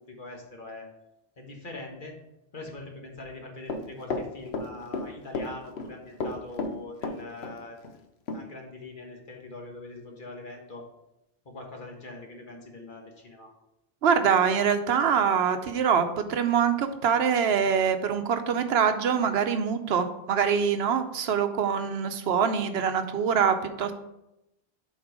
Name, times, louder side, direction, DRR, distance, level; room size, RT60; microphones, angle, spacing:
voice 1, 0.1-0.9 1.4-2.2 2.5-7.8 8.3-10.8 11.4-13.5, left 2 dB, 55° left, 1 dB, 1.5 m, -42 dB
Run, 3.7-5.1 5.3-5.9 6.2-7.6 7.8-7.9 8.3-8.4, left 3 dB, 85° left, 1.0 m, -32 dB
voice 2, 14.0-23.9, right 7 dB, 85° right, 9 dB, 0.9 m, -24 dB
7.4 x 4.3 x 4.7 m, 0.88 s
omnidirectional pair, 1.0 m